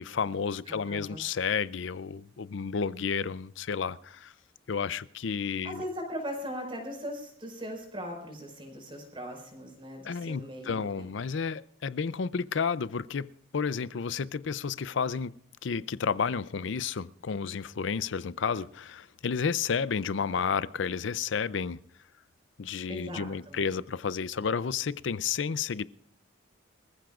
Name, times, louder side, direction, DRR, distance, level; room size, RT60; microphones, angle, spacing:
voice 1, 0.0-4.3 4.7-5.8 10.0-15.3 15.6-21.8 22.6-25.8, left 6 dB, 75° left, 0.5 m, -31 dB
voice 2, 0.7-1.2 5.6-11.1 22.9-23.6, equal, 25° right, 5.0 m, -39 dB
25.0 x 15.0 x 2.5 m
head